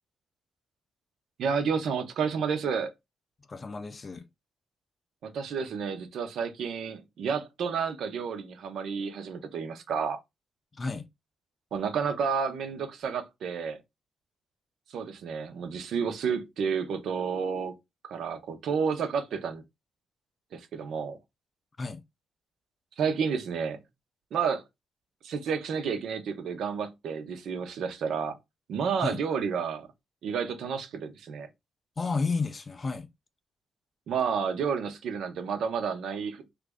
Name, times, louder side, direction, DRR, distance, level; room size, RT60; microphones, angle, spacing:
voice 1, 1.4-2.9 5.2-10.2 11.7-13.8 14.9-17.7 18.1-19.6 20.5-21.2 23.0-23.8 24.3-24.6 25.2-28.4 28.7-29.9 30.2-31.5 34.1-36.4, right 6 dB, 65° right, 0.6 m, -30 dB
voice 2, 3.5-4.2 10.8-11.1 21.8-22.0 29.0-29.2 32.0-33.1, left 4 dB, 25° left, 0.3 m, -31 dB
3.0 x 2.4 x 3.5 m
cardioid pair, 160°, 0 cm